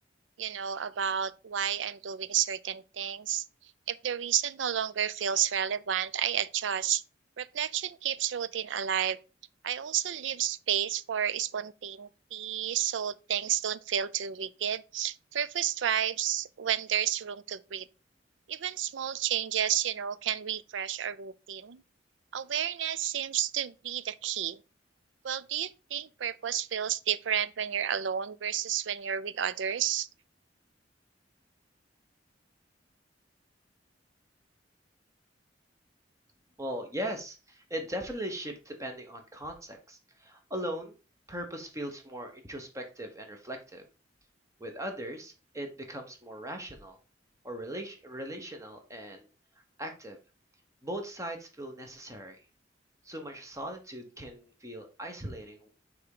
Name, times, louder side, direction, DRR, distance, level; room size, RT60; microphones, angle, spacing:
voice 1, 0.4-3.4 3.9-7.0 7.4-9.2 9.6-17.9 18.5-21.8 22.3-24.6 25.2-30.1, right 9 dB, 75° right, 0.5 m, -31 dB
voice 2, 36.6-41.0 41.3-43.9 44.6-47.0 47.4-49.3 49.8-50.2 50.8-52.4 53.0-55.7, equal, 15° right, 1.3 m, -39 dB
6.2 x 3.6 x 4.9 m
head